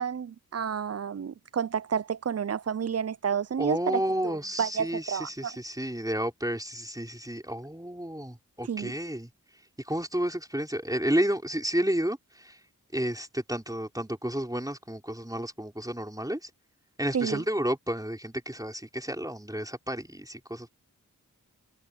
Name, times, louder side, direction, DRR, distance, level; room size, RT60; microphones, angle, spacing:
voice 1, 0.0-5.5 8.7-8.9 17.1-17.4, right 7 dB, 45° right, 0.5 m, -30 dB
voice 2, 3.6-9.3 9.8-12.6 12.9-16.5 17.0-20.7, right 1 dB, 10° right, 4.3 m, -31 dB
cardioid pair, 45°, 34 cm